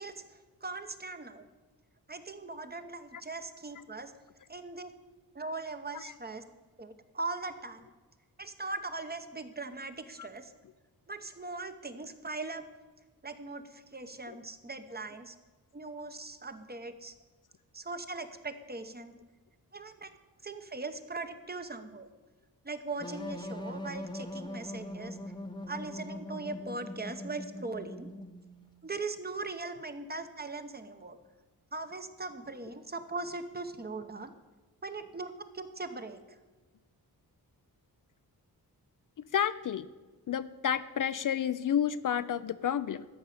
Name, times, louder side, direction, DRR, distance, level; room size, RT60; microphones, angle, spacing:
voice 1, 0.0-1.4 2.1-4.1 4.5-4.9 5.3-6.4 6.8-7.8 8.4-10.5 11.1-12.6 13.2-15.4 15.7-17.1 17.7-19.2 19.7-20.1 20.4-22.1 22.6-25.2 25.7-28.1 28.8-31.2 31.7-34.3 34.8-36.2, right 3 dB, 25° right, 9 dB, 0.9 m, -40 dB
sound 1, 23.0-28.6, left 1 dB, 10° left, 0.9 m, -41 dB
voice 2, 39.3-39.9 40.3-43.1, left 9 dB, 55° left, 14 dB, 0.4 m, -30 dB
13.5 x 5.4 x 8.5 m, 1.3 s
wide cardioid pair, 105°, 39 cm